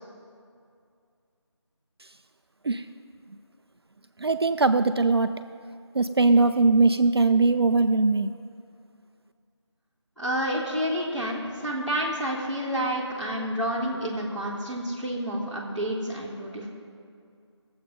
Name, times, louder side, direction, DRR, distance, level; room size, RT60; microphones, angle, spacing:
voice 1, 4.2-5.4 5.9-8.3, right 3 dB, 55° right, 10 dB, 0.4 m, -21 dB
voice 2, 10.2-16.7, equal, ahead, -15 dB, 1.6 m, -29 dB
19.0 x 7.8 x 5.3 m, 2.3 s
figure-of-eight pair, 165°, 15 cm